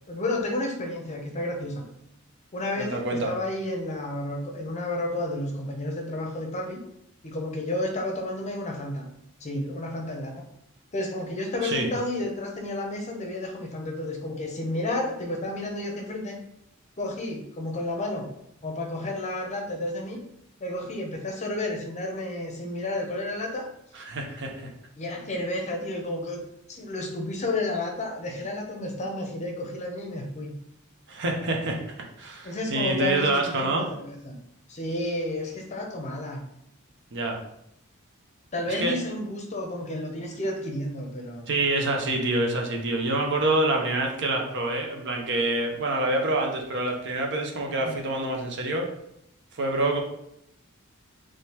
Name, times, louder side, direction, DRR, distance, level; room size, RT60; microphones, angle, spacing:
voice 1, 0.1-1.8 2.5-6.8 7.2-9.1 9.4-10.4 10.9-16.4 17.0-18.3 18.6-20.2 20.6-23.7 25.0-26.4 26.7-30.5 32.4-34.4 34.7-36.4 38.5-41.5 47.8-48.0, left 1 dB, 35° left, 2 dB, 0.6 m, -31 dB
voice 2, 2.8-3.3 11.6-11.9 24.1-24.7 31.1-31.8 32.2-33.9 37.1-37.4 38.8-38.9 41.5-48.9 49.6-50.0, right 2 dB, 60° right, 2 dB, 0.7 m, -26 dB
3.7 x 3.1 x 2.9 m, 0.78 s
head